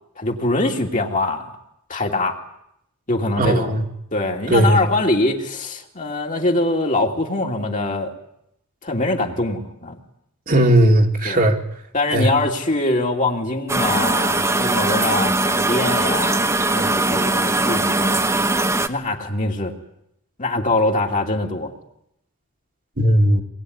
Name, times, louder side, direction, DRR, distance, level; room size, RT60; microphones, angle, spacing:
voice 1, 0.2-1.5 1.9-2.4 3.1-3.8 4.1-8.1 8.8-10.0 11.2-11.4 11.9-18.2 18.9-19.7 20.4-21.7, left 2 dB, 35° left, 1 dB, 2.9 m, -23 dB
voice 2, 3.4-3.8 4.5-4.8 10.5-11.6 12.1-12.3 23.0-23.4, right 1 dB, 40° right, 2 dB, 2.4 m, -16 dB
sound 1, 13.7-18.9, right 2 dB, 15° right, 1.2 m, -20 dB
25.0 x 20.5 x 9.7 m, 0.79 s
head